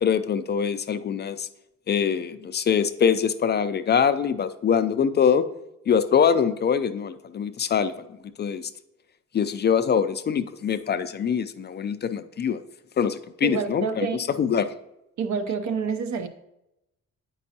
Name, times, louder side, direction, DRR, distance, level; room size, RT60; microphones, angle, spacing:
voice 1, 0.0-1.5 1.9-5.4 5.9-7.9 8.4-8.6 9.3-12.6 13.0-14.1 14.4-14.7, left 7 dB, 35° left, 0.4 m, -23 dB
voice 2, 13.4-14.3 15.2-16.3, right 5 dB, 70° right, 0.7 m, -27 dB
8.3 x 5.3 x 2.8 m
cardioid pair, 90°, 30 cm